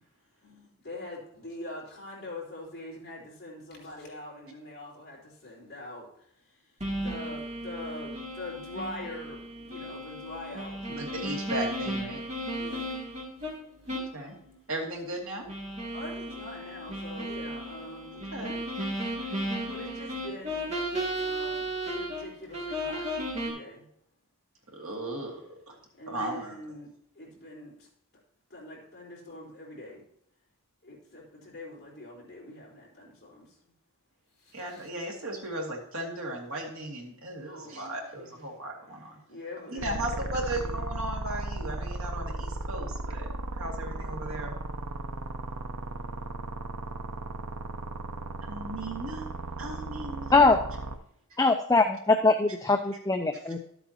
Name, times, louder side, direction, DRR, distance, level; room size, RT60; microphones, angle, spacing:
voice 1, 0.4-11.3 12.6-13.0 15.9-18.3 19.1-20.7 21.1-23.1 23.3-23.9 26.0-26.9 27.1-27.9 28.5-30.0 30.8-33.6 34.4-34.9 37.4-38.4 39.3-40.9, left 1 dB, 45° left, -4 dB, 3.9 m, -44 dB
sound 1, 6.8-13.5 13.9-14.1 14.5-14.6 15.5-22.2 22.5-23.5, right 1 dB, 30° right, 2.8 m, -34 dB
voice 2, 10.9-12.2 13.9-14.3 14.7-15.5 18.3-18.6 24.7-25.8 26.1-26.6 34.5-39.2 39.7-44.5 48.4-49.3 49.6-50.3 53.5-53.6, right 1 dB, 70° right, 0 dB, 2.2 m, -36 dB
sound 2, 39.8-51.0, right 2 dB, 90° right, 0.8 m, -36 dB
voice 3, 51.4-53.6, left 3 dB, 15° left, 5 dB, 0.4 m, -22 dB
12.5 x 8.0 x 2.9 m, 0.70 s
head